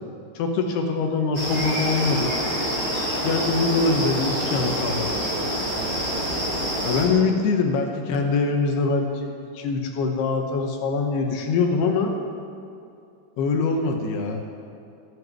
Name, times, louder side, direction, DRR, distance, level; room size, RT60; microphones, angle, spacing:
voice 1, 0.4-2.3 3.2-5.2 6.8-12.2 13.4-14.4, left 4 dB, 75° left, 3 dB, 2.6 m, -23 dB
sound 1, 1.3-7.1, equal, 20° right, 3.0 m, -26 dB
14.0 x 8.0 x 9.4 m, 2.5 s
omnidirectional pair, 5.6 m